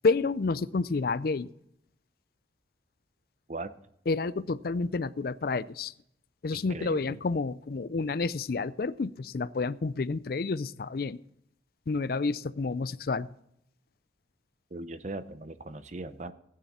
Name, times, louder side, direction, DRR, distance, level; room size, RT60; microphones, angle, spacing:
voice 1, 0.0-1.5 4.1-5.9 6.4-11.2 11.9-13.3, left 4 dB, 50° left, 17 dB, 0.4 m, -29 dB
voice 2, 6.5-7.2 14.7-16.3, right 2 dB, 40° right, 12 dB, 0.7 m, -39 dB
15.5 x 9.6 x 4.2 m, 0.77 s
head